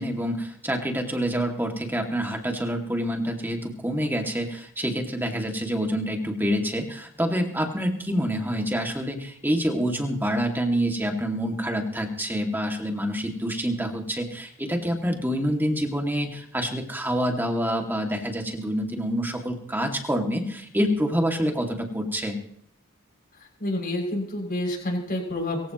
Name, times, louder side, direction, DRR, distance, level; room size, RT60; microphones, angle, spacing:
voice 1, 0.0-22.4, equal, 10° right, 3 dB, 2.3 m, -27 dB
voice 2, 23.6-25.7, left 1 dB, 45° left, 0 dB, 6.9 m, -28 dB
23.0 x 15.5 x 3.1 m, 0.66 s
head